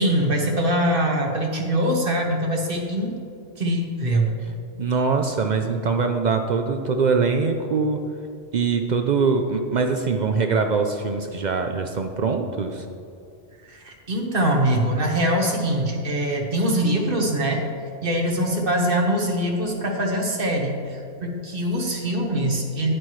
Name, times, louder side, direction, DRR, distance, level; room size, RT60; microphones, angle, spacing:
voice 1, 0.0-3.2 3.6-4.3 13.7-17.6 18.0-22.9, right 1 dB, 45° right, 1 dB, 1.3 m, -23 dB
voice 2, 4.8-8.0 8.5-12.9, right 4 dB, 70° right, 5 dB, 0.4 m, -23 dB
10.5 x 9.5 x 3.1 m, 2.4 s
omnidirectional pair, 1.3 m